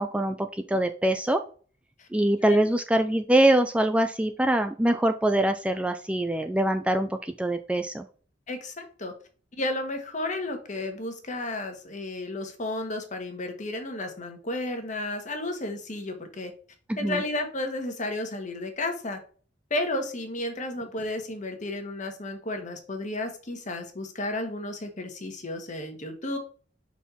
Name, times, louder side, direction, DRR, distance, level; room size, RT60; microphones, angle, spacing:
voice 1, 0.0-1.4 2.1-8.0 16.9-17.2, right 1 dB, 5° right, 7 dB, 0.4 m, -24 dB
voice 2, 8.5-9.1 9.6-16.5 17.0-19.2 19.7-26.4, left 2 dB, 45° left, 6 dB, 1.3 m, -32 dB
5.5 x 4.2 x 4.3 m, 0.41 s
head